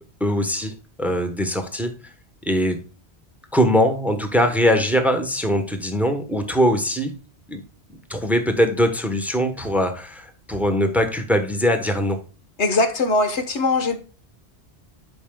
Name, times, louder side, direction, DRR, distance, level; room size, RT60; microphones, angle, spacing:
voice 1, 0.2-2.1 2.4-2.8 3.5-7.1 7.5-7.6 8.1-12.2, equal, ahead, 6 dB, 1.1 m, -21 dB
voice 2, 12.6-14.0, left 3 dB, 90° left, 7 dB, 1.7 m, -21 dB
11.0 x 5.3 x 2.3 m, 0.35 s
omnidirectional pair, 1.1 m